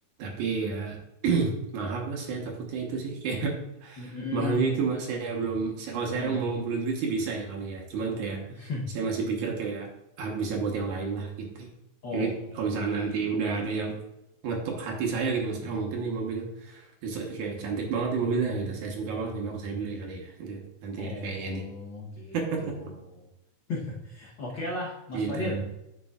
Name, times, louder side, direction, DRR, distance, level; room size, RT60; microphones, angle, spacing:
voice 1, 0.2-1.0 1.2-3.5 3.8-8.4 8.9-9.9 10.2-11.7 12.1-14.0 14.4-21.6 22.3-22.7 25.1-25.6, right 4 dB, 70° right, 0 dB, 2.6 m, -30 dB
voice 2, 4.0-4.8 5.9-6.5 8.5-8.9 12.0-12.7 21.0-23.3 23.7-25.6, left 2 dB, 80° left, -4 dB, 1.0 m, -36 dB
9.6 x 6.7 x 2.4 m, 0.87 s
omnidirectional pair, 3.7 m